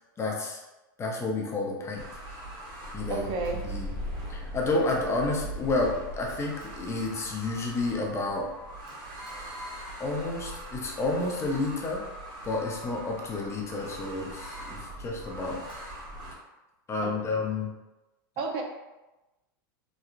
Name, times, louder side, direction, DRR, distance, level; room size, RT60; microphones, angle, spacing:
voice 1, 0.2-0.6 1.0-2.0 2.9-3.3 3.6-3.9 4.3-8.5 10.0-12.0 12.4-15.6 16.9-17.7, left 2 dB, 25° left, -1 dB, 0.6 m, -30 dB
sound 1, 2.0-16.3, right 1 dB, 35° right, 1.3 m, -40 dB
voice 2, 3.1-3.6 18.4-18.6, right 3 dB, 50° right, 3 dB, 0.6 m, -30 dB
3.0 x 2.3 x 2.4 m, 1.0 s
hypercardioid pair, 105°, 12 cm